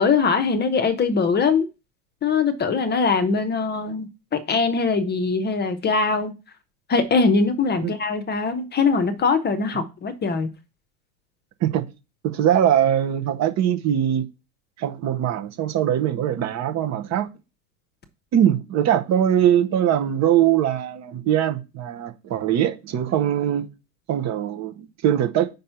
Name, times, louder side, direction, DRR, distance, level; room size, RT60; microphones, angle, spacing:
voice 1, 0.0-1.7 2.2-6.3 6.9-10.5, left 4 dB, 25° left, 0.8 m, -22 dB
voice 2, 12.2-14.3 14.8-17.3 18.3-23.7 24.1-25.5, right 10 dB, 40° right, 0.9 m, -21 dB
5.4 x 4.3 x 5.6 m
hypercardioid pair, 100°, 44 cm